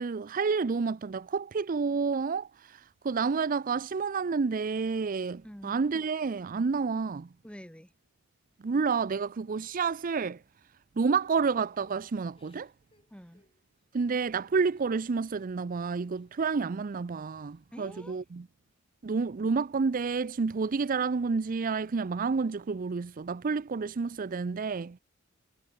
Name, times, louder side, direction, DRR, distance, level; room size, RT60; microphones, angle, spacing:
voice 1, 0.0-7.3 8.6-10.4 11.0-12.7 13.9-18.5 19.0-25.0, right 5 dB, 40° right, 0.4 m, -29 dB
voice 2, 5.4-5.8 7.4-7.9 13.1-13.4 17.7-18.2, equal, 5° left, 3.5 m, -47 dB
Crying sobbing / Breathing, 11.7-16.3 16.7-17.7 18.1-18.8, left 2 dB, 25° left, 7.1 m, -70 dB
head